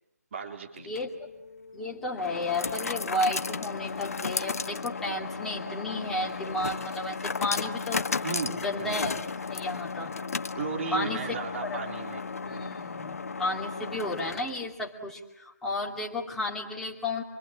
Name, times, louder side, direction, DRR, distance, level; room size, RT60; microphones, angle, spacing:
voice 1, 0.3-0.9 8.2-9.3 10.5-12.2, right 4 dB, 45° right, 3 dB, 3.9 m, -35 dB
sound 1, 0.8-14.7, left 4 dB, 60° left, 1.1 m, -34 dB
voice 2, 0.9-1.3 1.7-9.1 9.4-10.2 10.9-11.2 11.7-11.8 12.4-17.2, left 1 dB, 5° left, -2 dB, 2.7 m, -33 dB
26.5 x 25.0 x 8.8 m, 0.88 s
figure-of-eight pair, 145°, 9 cm